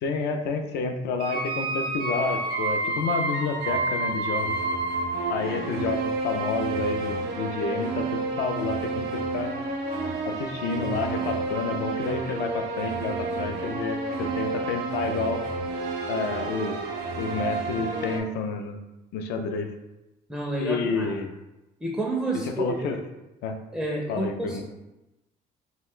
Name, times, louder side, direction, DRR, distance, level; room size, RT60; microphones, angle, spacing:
voice 1, 0.0-4.6 5.3-9.5 10.2-15.4 16.1-16.8 17.2-18.8 19.1-19.7 20.6-21.3 22.3-23.0 23.4-23.6 24.1-24.6, left 4 dB, 80° left, 6 dB, 0.4 m, -29 dB
sound 1, 1.2-18.2, right 3 dB, 85° right, 0.5 m, -30 dB
voice 2, 20.3-21.1 21.8-23.0 23.7-24.6, right 1 dB, 5° right, -1 dB, 0.4 m, -30 dB
2.4 x 2.1 x 3.6 m, 0.98 s
cardioid pair, 110°, 17 cm